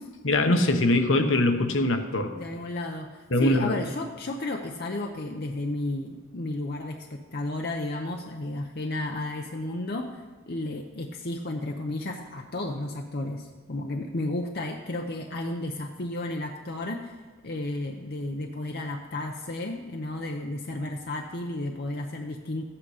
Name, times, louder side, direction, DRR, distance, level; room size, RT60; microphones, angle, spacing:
voice 1, 0.2-2.3 3.3-3.7, left 1 dB, 70° left, 6 dB, 1.0 m, -22 dB
voice 2, 2.3-17.2 17.4-22.6, left 2 dB, 50° left, 3 dB, 0.7 m, -33 dB
13.5 x 8.8 x 4.9 m, 1.3 s
head